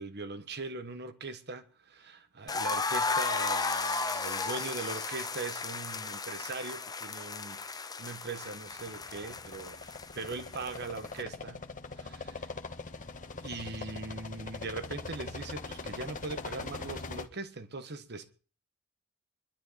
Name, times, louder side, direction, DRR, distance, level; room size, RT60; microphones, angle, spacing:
voice 1, 0.0-11.7 12.0-12.5 13.4-18.3, right 3 dB, 50° right, 1.4 m, -40 dB
sound 1, 2.5-11.2, left 4 dB, 20° left, 0.7 m, -35 dB
sound 2, 3.2-5.5 13.5-14.2, right 1 dB, 15° right, 1.5 m, -53 dB
sound 3, 8.7-17.3, left 3 dB, 40° left, 1.5 m, -42 dB
24.0 x 12.0 x 4.2 m
head